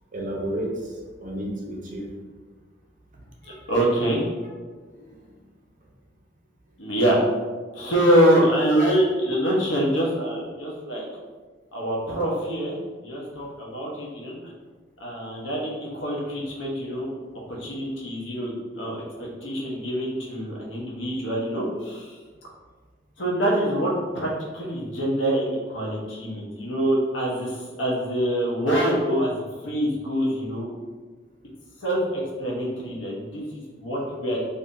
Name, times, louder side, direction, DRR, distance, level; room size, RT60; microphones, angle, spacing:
voice 1, 0.1-2.1 3.4-3.6 4.9-5.3, right 1 dB, 45° right, -1 dB, 0.6 m, -32 dB
voice 2, 3.4-4.2 6.8-7.2 7.7-11.0 11.7-14.5 15.0-17.1 17.5-18.9 19.2-22.2 23.2-29.3 29.6-30.7 31.8-34.6, right 1 dB, 85° left, -3 dB, 0.9 m, -25 dB
2.6 x 2.6 x 3.6 m, 1.4 s
head